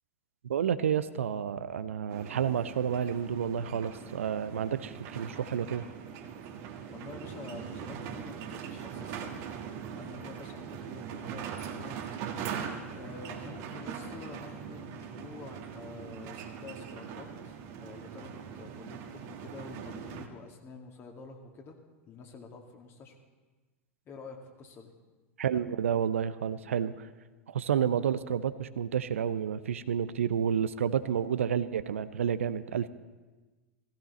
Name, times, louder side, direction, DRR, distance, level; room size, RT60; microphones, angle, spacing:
voice 1, 0.4-5.8 25.4-27.1 27.5-32.9, right 8 dB, 70° right, 14 dB, 0.5 m, -30 dB
sound 1, 2.1-20.3, right 7 dB, 45° right, 1.4 m, -41 dB
voice 2, 6.9-9.5 10.0-12.5 12.9-21.8 22.1-23.1 24.1-24.9, left 4 dB, 30° left, 2 dB, 2.3 m, -48 dB
16.5 x 16.0 x 4.2 m, 1.2 s
figure-of-eight pair, 85°, 8 cm